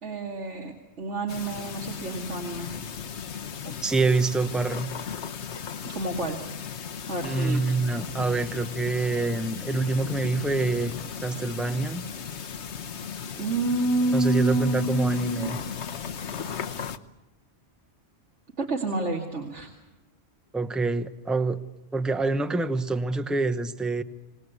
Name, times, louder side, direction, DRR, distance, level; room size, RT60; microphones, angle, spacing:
voice 1, 0.0-2.8 3.6-3.8 5.8-6.4 7.1-7.6 13.4-15.5 18.6-19.7, right 2 dB, 85° right, 0 dB, 2.7 m, -28 dB
sound 1, 1.3-17.0, left 7 dB, 75° left, 1.3 m, -36 dB
voice 2, 3.8-4.9 7.2-12.0 14.1-15.6 20.5-21.6 21.9-24.0, right 3 dB, ahead, 9 dB, 0.8 m, -26 dB
26.0 x 19.5 x 8.2 m, 1.1 s
omnidirectional pair, 1.2 m